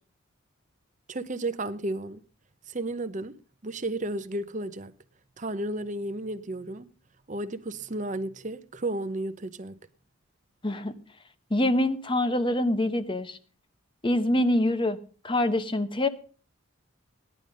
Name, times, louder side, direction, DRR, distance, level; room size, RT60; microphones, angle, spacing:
voice 1, 1.1-2.2 2.7-3.3 3.6-4.9 5.4-6.9 7.3-9.8, right 2 dB, 35° right, 0.8 m, -33 dB
voice 2, 11.5-13.4 14.0-15.0 15.2-16.1, left 1 dB, 25° left, 0.9 m, -25 dB
16.5 x 11.0 x 5.2 m
head